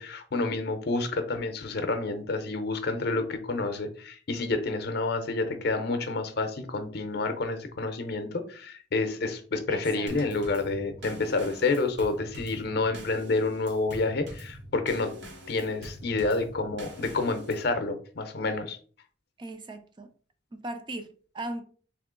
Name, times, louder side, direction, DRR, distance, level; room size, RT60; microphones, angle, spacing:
voice 1, 0.0-15.1 15.5-18.8, left 3 dB, 55° left, 0.6 m, -29 dB
voice 2, 9.7-10.3 19.4-20.1 20.5-21.6, right 1 dB, 25° right, 0.4 m, -39 dB
Drum kit / Snare drum / Bass drum, 10.1-17.7, equal, 65° right, 1.1 m, -44 dB
3.6 x 2.9 x 3.7 m
head